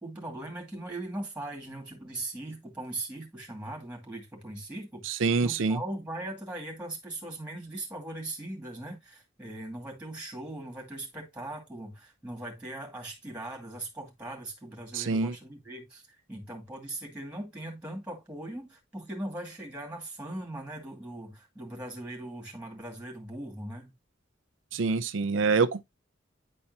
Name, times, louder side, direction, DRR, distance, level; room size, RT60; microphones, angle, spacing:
voice 1, 0.0-16.0 16.3-23.9, right 1 dB, 5° right, 2.3 m, -40 dB
voice 2, 5.1-5.8 14.9-15.3 24.7-25.8, right 4 dB, 85° right, 0.5 m, -26 dB
9.9 x 4.3 x 2.7 m
head